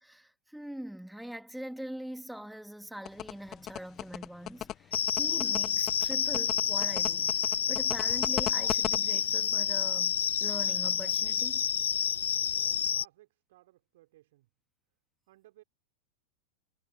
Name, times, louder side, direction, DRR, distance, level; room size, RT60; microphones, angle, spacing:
voice 1, 0.0-7.3 7.7-11.7, right 1 dB, ahead, 2.9 m, -43 dB
sound 1, 3.1-9.0, left 12 dB, 30° left, 1.2 m, -36 dB
sound 2, 4.9-13.0, left 8 dB, 65° left, 0.4 m, -29 dB
voice 2, 12.5-14.5 15.3-15.6, right 16 dB, 55° right, 4.9 m, -60 dB
figure-of-eight pair, 90°, 0 cm